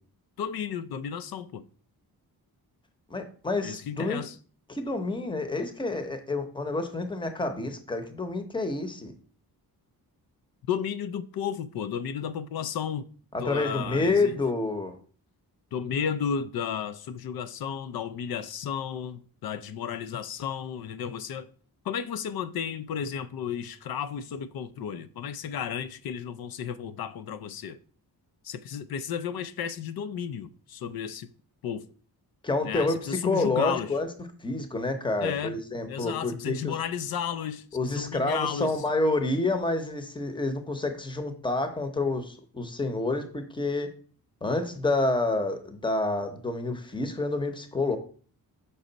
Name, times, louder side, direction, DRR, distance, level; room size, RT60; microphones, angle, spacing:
voice 1, 0.4-1.6 3.6-4.4 10.7-13.0 13.4-14.4 15.7-21.5 21.8-27.8 28.4-31.3 31.6-31.9 32.6-33.9 35.2-35.6 35.9-38.8, left 8 dB, 70° left, 0.5 m, -33 dB
voice 2, 3.1-4.3 4.7-9.1 13.3-15.0 32.4-34.1 34.4-36.7 37.7-43.9 44.4-48.0, left 2 dB, 15° left, 0.8 m, -28 dB
6.1 x 5.5 x 3.9 m
wide cardioid pair, 165°, 37 cm